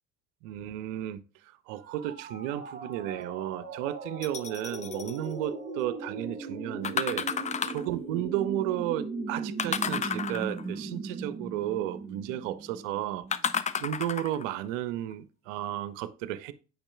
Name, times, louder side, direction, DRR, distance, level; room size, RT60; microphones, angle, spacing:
voice 1, 0.4-16.5, right 13 dB, 70° right, 0.5 m, -33 dB
sound 1, 1.7-13.6, right 3 dB, 25° right, 1.8 m, -39 dB
sound 2, 4.2-5.2 6.8-7.9 9.6-10.7 13.3-14.5 15.1-15.2, left 7 dB, 20° left, 0.4 m, -32 dB
8.8 x 5.2 x 2.3 m
figure-of-eight pair, 50°, 39 cm